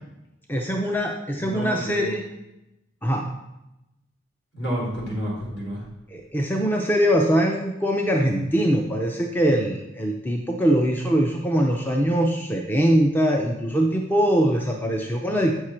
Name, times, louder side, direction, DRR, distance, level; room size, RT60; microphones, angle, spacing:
voice 1, 0.5-2.2 3.0-3.3 6.1-15.5, equal, 10° left, 1 dB, 0.5 m, -22 dB
voice 2, 1.3-2.2 4.5-5.8, equal, 60° left, -4 dB, 3.4 m, -30 dB
8.3 x 6.4 x 4.3 m, 0.91 s
head